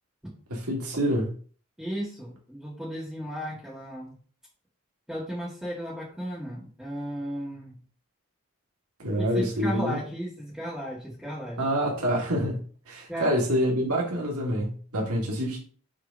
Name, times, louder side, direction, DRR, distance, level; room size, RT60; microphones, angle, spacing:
voice 1, 0.5-1.3 9.0-10.0 11.6-12.6 12.9-15.6, equal, 90° right, 1.9 m, -26 dB
voice 2, 1.8-4.2 5.1-7.8 9.2-11.6 13.1-13.4, equal, 5° right, 1.8 m, -35 dB
6.6 x 3.6 x 5.2 m
head